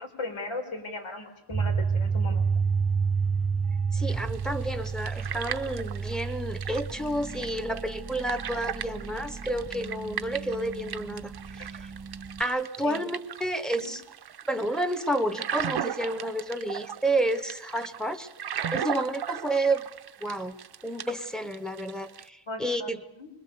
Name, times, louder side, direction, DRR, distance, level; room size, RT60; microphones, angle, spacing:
voice 1, 0.0-2.4 11.6-11.7 12.8-13.0 13.7-13.9 22.5-23.3, left 2 dB, 85° left, 4 dB, 4.5 m, -37 dB
sound 1, 1.5-12.4, right 5 dB, 20° right, 0.7 m, -30 dB
voice 2, 3.9-11.9 12.4-14.0 14.5-18.3 18.7-19.9 20.2-20.6 20.8-23.0, right 1 dB, ahead, 9 dB, 1.1 m, -30 dB
sound 2, 4.1-22.3, right 9 dB, 55° right, 0.8 m, -38 dB
25.0 x 21.5 x 6.9 m, 0.92 s
wide cardioid pair, 155°, 47 cm